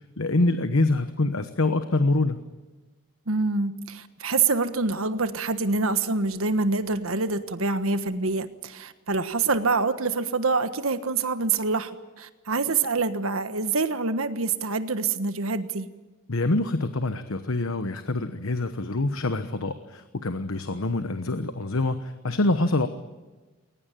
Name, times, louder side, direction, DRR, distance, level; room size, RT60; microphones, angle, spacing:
voice 1, 0.2-2.4 16.3-22.9, left 2 dB, 75° left, 9 dB, 1.1 m, -25 dB
voice 2, 3.3-15.9, right 4 dB, 80° right, 10 dB, 1.4 m, -26 dB
21.5 x 19.5 x 9.1 m, 1.2 s
head